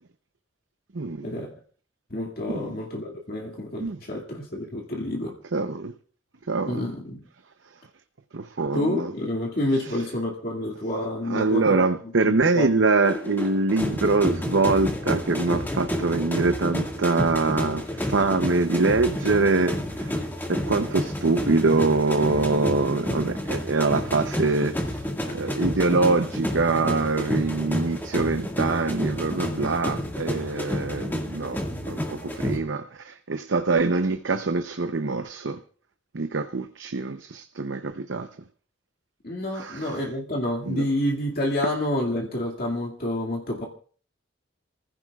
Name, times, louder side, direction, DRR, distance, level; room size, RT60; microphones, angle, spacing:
voice 1, 0.9-1.3 2.5-2.7 3.8-4.0 5.5-5.9 6.5-6.9 8.3-9.1 11.3-20.2 20.5-25.0 25.3-35.6 36.1-38.3 39.5-39.9 40.7-40.9, right 3 dB, 70° right, 8 dB, 0.8 m, -24 dB
voice 2, 2.1-5.3 6.7-7.2 8.7-11.9 12.2-12.9 39.2-43.7, left 1 dB, 50° left, 0 dB, 2.2 m, -28 dB
sound 1, 13.0-32.6, equal, 10° left, 1.9 m, -30 dB
29.5 x 15.5 x 2.4 m, 0.43 s
head